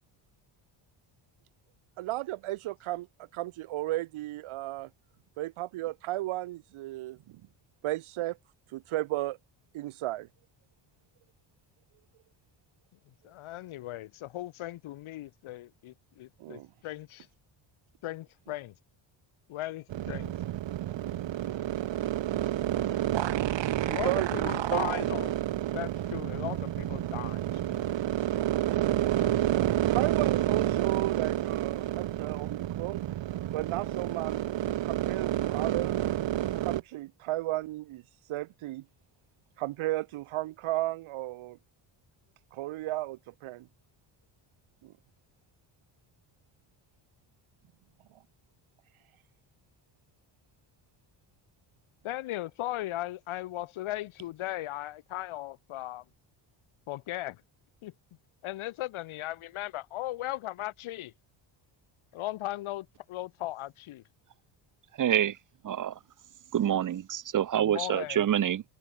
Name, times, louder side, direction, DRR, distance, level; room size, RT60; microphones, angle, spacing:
voice 1, 2.0-3.1 3.3-4.9 5.4-7.4 7.8-8.4 8.7-9.4 9.7-10.3 16.4-16.7 21.4-21.7 23.8-24.9 26.4-26.5 28.3-33.0 33.5-36.0 36.6-38.0 38.3-38.8 39.6-41.6 42.5-43.7 44.8-44.9, right 16 dB, 80° right, 1.6 m, -34 dB
voice 2, 13.1-17.3 18.0-18.8 19.5-20.4 23.8-25.3 25.7-28.0 52.0-56.1 56.9-57.4 57.8-57.9 58.4-61.1 62.1-64.0 67.6-68.3, left 15 dB, 80° left, 3.5 m, -37 dB
sound 1, 19.9-36.8, right 13 dB, 60° right, 3.3 m, -30 dB
voice 3, 65.0-65.3 65.6-65.9 66.5-68.6, right 10 dB, 40° right, 1.1 m, -26 dB
cardioid pair, 170°, 48 cm